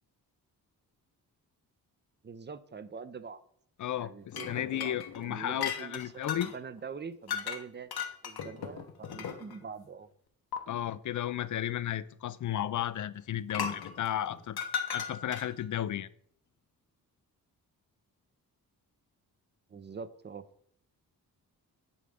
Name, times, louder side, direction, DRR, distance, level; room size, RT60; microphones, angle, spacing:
voice 1, 2.2-3.4 4.0-7.9 8.2-10.1 19.7-20.4, right 5 dB, 30° right, 0.5 m, -44 dB
voice 2, 3.8-6.5 10.7-14.6 14.9-16.1, left 11 dB, 50° left, 0.4 m, -34 dB
sound 1, 4.3-6.6 7.3-7.6 7.9-9.6 10.5-10.6 13.5-15.6, left 7 dB, 70° left, 0.9 m, -37 dB
9.9 x 3.7 x 3.5 m
cardioid pair, 55°, 39 cm